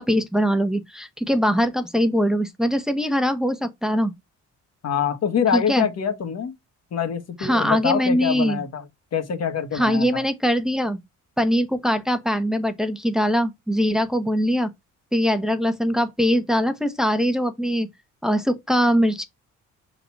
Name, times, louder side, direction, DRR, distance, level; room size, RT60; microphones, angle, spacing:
voice 1, 0.0-4.1 5.5-5.9 7.4-8.6 9.7-11.0 11.4-14.7 15.1-17.9 18.2-19.2, equal, ahead, 1.1 m, -22 dB
voice 2, 4.8-6.5 6.9-8.8 9.1-10.2, left 7 dB, 55° left, 1.6 m, -25 dB
5.8 x 4.0 x 4.6 m
cardioid pair, 90°, 30 cm